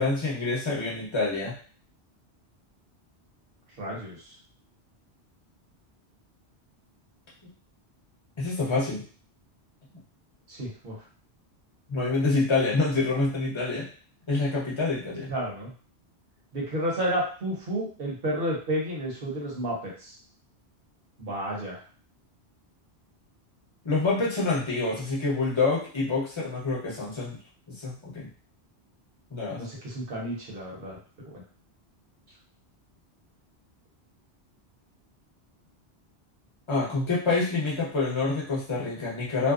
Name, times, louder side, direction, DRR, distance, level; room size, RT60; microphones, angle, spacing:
voice 1, 0.0-1.6 8.4-9.0 11.9-13.9 14.3-15.3 23.8-27.4 27.7-28.3 29.3-29.6 36.7-39.5, left 3 dB, 30° left, -5 dB, 0.8 m, -27 dB
voice 2, 3.8-4.2 10.5-11.0 15.3-15.7 16.5-20.1 21.2-21.8 29.6-31.0, right 1 dB, 60° right, -3 dB, 1.0 m, -31 dB
2.7 x 2.0 x 2.4 m, 0.42 s
omnidirectional pair, 1.1 m